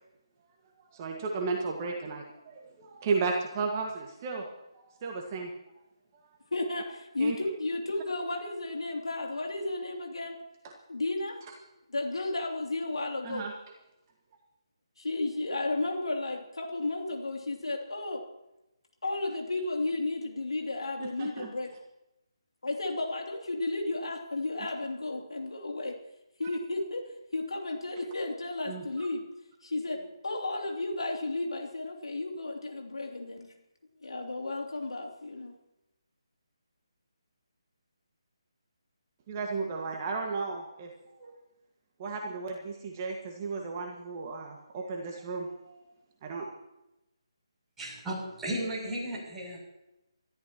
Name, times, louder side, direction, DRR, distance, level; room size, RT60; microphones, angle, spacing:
voice 1, 0.9-4.4 4.8-5.5 7.2-7.3 13.2-13.5 21.0-21.5 28.7-29.1 39.3-41.3 42.0-45.8 46.2-46.5, right 4 dB, 30° right, 1 dB, 1.8 m, -34 dB
voice 2, 6.5-10.4 10.9-11.4 11.9-13.5 15.0-18.2 19.0-21.7 22.6-26.0 26.4-27.1 27.3-29.2 29.6-33.5 34.0-35.5, left 2 dB, 75° left, 1 dB, 3.0 m, -33 dB
voice 3, 47.8-49.6, right 1 dB, 5° right, -8 dB, 7.9 m, -35 dB
28.0 x 14.0 x 3.1 m, 0.93 s
figure-of-eight pair, 150°, 3 cm